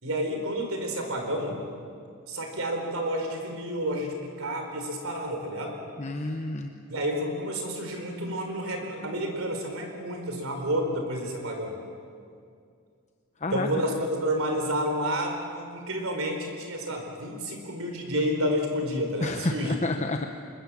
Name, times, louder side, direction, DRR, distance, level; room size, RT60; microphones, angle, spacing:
voice 1, 0.0-1.6 2.3-5.8 6.9-11.8 13.5-19.8, equal, 70° right, 3 dB, 4.4 m, -30 dB
voice 2, 6.0-6.7 13.4-13.7 19.2-20.3, left 2 dB, 35° left, 5 dB, 0.9 m, -29 dB
25.5 x 22.0 x 7.5 m, 2.3 s
head